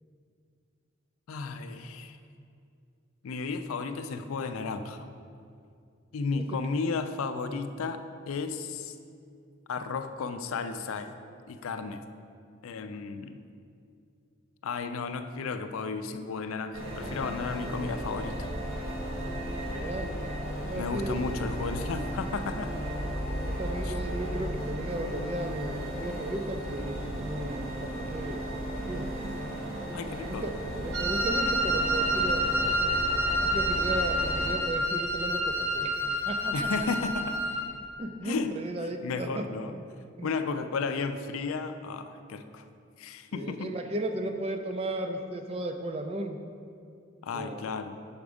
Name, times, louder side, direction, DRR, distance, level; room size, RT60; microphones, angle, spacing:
voice 1, 1.3-2.2 3.2-5.1 6.1-9.0 9.7-11.1 11.5-12.0 12.6-13.4 14.6-18.5 20.7-22.7 23.8-23.9 29.9-30.5 36.5-37.4 38.2-38.6 39.0-39.7 40.2-42.6 43.0-43.7 47.2-48.0, left 4 dB, 85° left, 9 dB, 0.4 m, -33 dB
sound 1, 16.7-34.5, equal, 80° right, 1.3 m, -35 dB
voice 2, 19.6-20.1 20.7-21.1 23.5-28.5 28.9-29.1 30.4-32.5 33.4-36.7 38.0-39.8 40.2-40.3 43.3-46.4 47.3-47.6, right 1 dB, 30° right, 6 dB, 0.3 m, -35 dB
Wind instrument woodwind instrument, 30.9-37.7, equal, 55° right, 0.8 m, -28 dB
5.9 x 5.1 x 4.8 m, 2.4 s
head